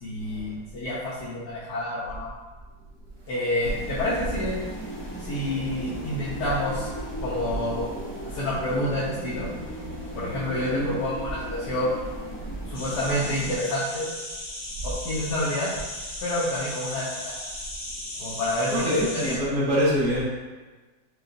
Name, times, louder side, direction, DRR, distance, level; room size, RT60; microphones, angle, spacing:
voice 1, 0.0-2.3 3.3-4.6 5.2-6.9 7.2-7.9 8.3-9.5 10.1-11.9 12.7-14.1 14.8-15.7 16.2-17.3 18.2-19.3, left 1 dB, 80° left, -9 dB, 1.3 m, -28 dB
sound 1, 3.6-13.6, equal, 15° left, 0.5 m, -36 dB
voice 2, 10.7-11.0 18.7-20.2, equal, 70° right, -8 dB, 1.8 m, -24 dB
sound 2, 12.7-19.4, left 1 dB, 50° left, 1.1 m, -36 dB
6.4 x 2.3 x 2.6 m, 1.3 s
omnidirectional pair, 1.7 m